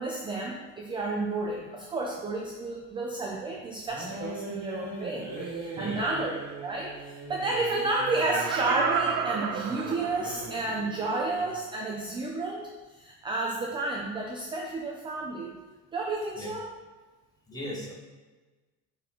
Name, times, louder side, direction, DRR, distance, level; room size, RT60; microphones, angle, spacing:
voice 1, 0.0-15.5 15.9-16.7, right 2 dB, 15° right, -1 dB, 0.3 m, -31 dB
sound 1, 3.9-11.6, right 2 dB, 45° right, 1.9 m, -40 dB
voice 2, 4.9-5.4 5.6-6.1 16.2-16.5 17.5-17.9, equal, 10° left, -3 dB, 1.1 m, -40 dB
Laughter, 7.9-10.6 11.1-11.2, right 7 dB, 70° right, 0.6 m, -31 dB
9.2 x 4.1 x 2.9 m, 1.2 s
cardioid pair, 170°, 35 cm